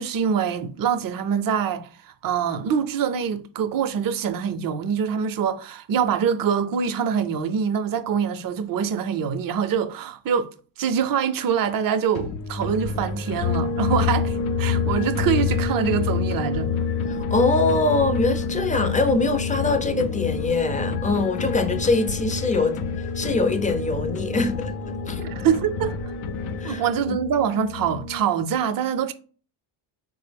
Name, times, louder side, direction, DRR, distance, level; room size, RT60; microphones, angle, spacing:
voice 1, 0.0-10.5 10.8-16.7 25.2-25.9 26.6-29.1, right 7 dB, 45° right, 0.5 m, -24 dB
sound 1, 12.1-27.2, left 3 dB, 85° left, 0.6 m, -33 dB
sound 2, 13.4-28.2, left 6 dB, 50° left, 0.8 m, -28 dB
voice 2, 17.1-25.2 26.6-26.8 27.1-27.2, left 3 dB, 15° left, 0.4 m, -23 dB
4.0 x 2.0 x 3.3 m
cardioid pair, 80°, 49 cm